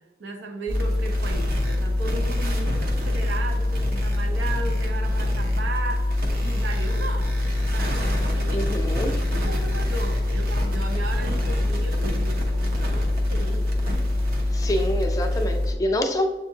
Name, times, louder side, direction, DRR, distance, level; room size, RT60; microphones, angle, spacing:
voice 1, 0.2-7.4 7.7-8.7 9.1-13.7, right 2 dB, 85° right, 3 dB, 0.8 m, -36 dB
sound 1, 0.7-15.7, left 1 dB, 55° right, 0.7 m, -24 dB
voice 2, 8.5-9.1 14.5-16.3, left 1 dB, 20° left, 4 dB, 0.4 m, -26 dB
7.0 x 2.5 x 2.7 m, 1.1 s
head